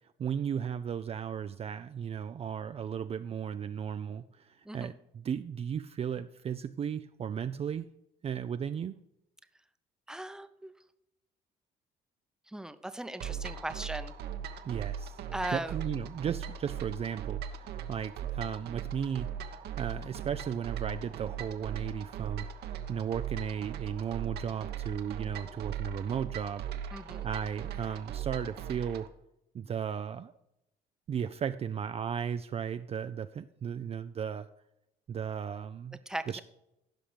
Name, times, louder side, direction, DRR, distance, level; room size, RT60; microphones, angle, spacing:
voice 1, 0.2-7.8 8.2-9.0 14.6-19.3 19.8-22.5 22.9-26.7 27.2-29.1 29.5-30.3 31.1-34.5 35.1-36.0 36.3-36.4, right 8 dB, 35° right, 10 dB, 0.4 m, -35 dB
voice 2, 10.1-10.7 12.5-14.1 15.3-15.7 26.9-27.3 36.1-36.4, right 1 dB, 5° right, 10 dB, 0.8 m, -38 dB
sound 1, 13.2-29.1, right 8 dB, 70° right, 1.2 m, -39 dB
15.5 x 5.8 x 5.0 m, 0.85 s
cardioid pair, 110°, 17 cm